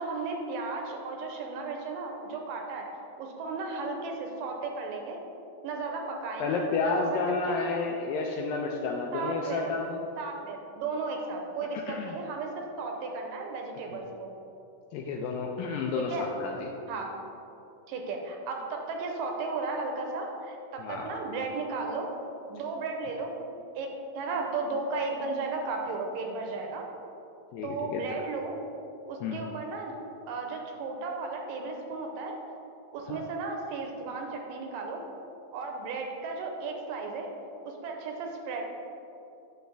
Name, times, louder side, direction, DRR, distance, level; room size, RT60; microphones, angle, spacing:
voice 1, 0.0-2.9 3.2-5.2 5.6-7.2 7.5-7.7 9.1-9.7 10.2-14.3 16.0-16.3 16.9-17.1 17.9-22.1 22.5-26.9 27.6-28.5 29.1-29.9 30.3-32.4 32.9-35.0 35.5-37.3 37.6-38.6, right 3 dB, 80° right, 2 dB, 2.2 m, -35 dB
voice 2, 6.4-10.0 11.9-12.1 13.9-14.0 14.9-16.7 20.8-21.1 27.5-28.0 29.2-29.5 33.1-33.2, left 4 dB, 80° left, 0 dB, 2.2 m, -31 dB
9.2 x 6.5 x 3.3 m, 2.8 s
omnidirectional pair, 4.2 m